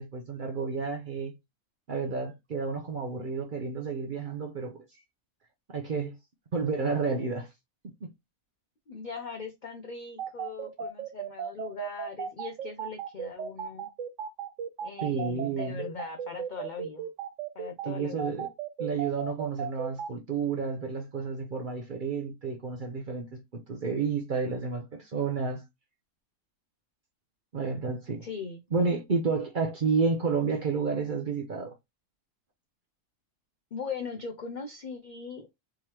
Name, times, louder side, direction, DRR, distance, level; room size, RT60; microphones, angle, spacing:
voice 1, 0.0-1.3 1.9-4.8 5.7-6.1 6.5-7.5 8.0-8.1 15.0-15.8 17.9-18.5 18.8-25.6 27.5-28.3 28.7-31.7, right 5 dB, 50° right, 0.6 m, -30 dB
voice 2, 8.9-13.9 14.8-17.1 17.5-18.3 28.2-28.6 33.7-35.5, left 5 dB, 70° left, 0.4 m, -40 dB
sound 1, 10.2-20.1, right 8 dB, 70° right, 0.9 m, -35 dB
3.6 x 3.1 x 2.9 m
omnidirectional pair, 1.5 m